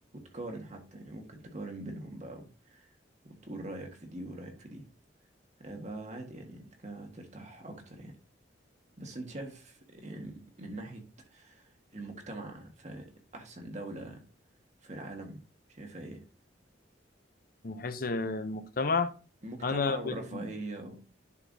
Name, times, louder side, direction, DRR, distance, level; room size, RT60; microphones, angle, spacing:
voice 1, 0.1-2.9 3.2-4.8 5.6-8.1 9.0-11.0 11.3-13.1 13.3-14.2 14.8-15.4 15.7-16.2 19.4-21.0, right 2 dB, 40° right, 1.5 m, -43 dB
voice 2, 17.6-19.1 19.6-20.5, left 4 dB, 50° left, 0.6 m, -31 dB
11.0 x 4.6 x 2.7 m
head